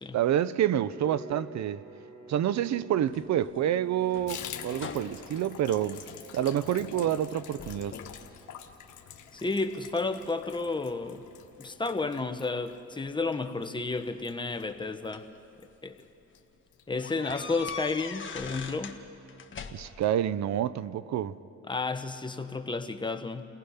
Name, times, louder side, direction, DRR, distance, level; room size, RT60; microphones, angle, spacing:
voice 1, 0.1-1.8 2.3-6.1 6.3-8.0 19.7-21.4, right 11 dB, 65° right, 0.7 m, -28 dB
sound 1, 0.8-11.9, right 1 dB, 45° right, 3.0 m, -51 dB
sound 2, 3.1-6.5 6.9-7.3 7.6-8.3 8.7-9.4 10.0-11.5 12.6-12.7 14.0-15.4 15.9-16.0 16.3-16.4 17.0-19.0 19.3-20.1, left 5 dB, 40° left, 1.6 m, -43 dB
Water tap faucet / Bathtub (filling or washing), 4.3-15.2 15.5-15.7 16.0-16.1 16.3-16.8 17.1-17.2 17.5-17.6, left 9 dB, 75° left, 1.5 m, -47 dB
voice 2, 9.3-11.2 11.6-15.3 15.8-16.0 16.9-19.0 21.7-23.5, left 3 dB, 15° left, 1.2 m, -32 dB
29.0 x 18.5 x 5.7 m
cardioid pair, 90°, 30 cm